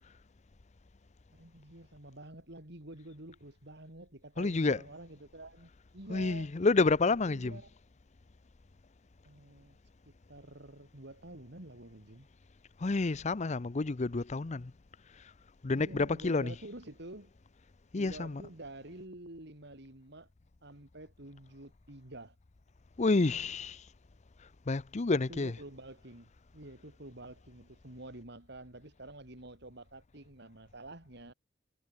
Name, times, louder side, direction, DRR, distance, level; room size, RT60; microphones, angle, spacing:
voice 1, 1.4-6.5 7.2-7.7 9.2-9.8 10.1-12.3 15.7-17.3 18.0-20.3 20.6-22.4 25.3-31.3, right 1 dB, 65° right, 4.3 m, -49 dB
voice 2, 4.4-4.8 6.1-7.6 12.8-14.7 15.6-16.5 17.9-18.4 23.0-23.8 24.7-25.5, left 3 dB, 40° left, 0.6 m, -29 dB
head